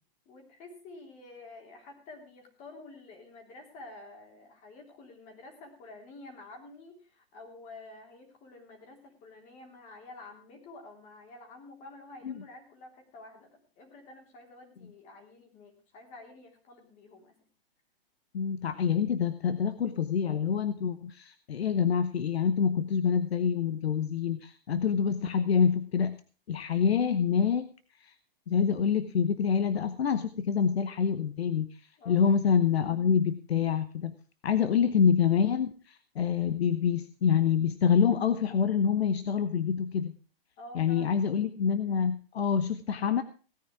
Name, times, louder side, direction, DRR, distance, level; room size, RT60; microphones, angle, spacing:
voice 1, 0.3-17.4 32.0-32.2 40.6-41.2, left 2 dB, 25° left, 3 dB, 3.4 m, -49 dB
voice 2, 18.3-26.2 26.5-27.7 28.0-28.1 28.5-31.7 32.1-34.1 34.4-40.1 40.7-43.2, left 7 dB, 85° left, 12 dB, 1.1 m, -26 dB
17.5 x 9.7 x 4.7 m, 0.37 s
hypercardioid pair, 155°, 30 cm